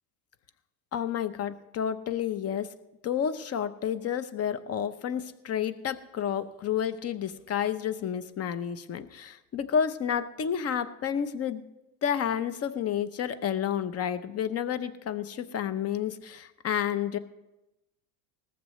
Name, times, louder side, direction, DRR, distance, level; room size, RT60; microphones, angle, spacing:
voice 1, 0.9-2.7 3.0-11.6 12.0-17.2, left 8 dB, 30° left, 13 dB, 0.8 m, -30 dB
19.0 x 14.5 x 3.1 m, 0.97 s
supercardioid pair, 120°, 49 cm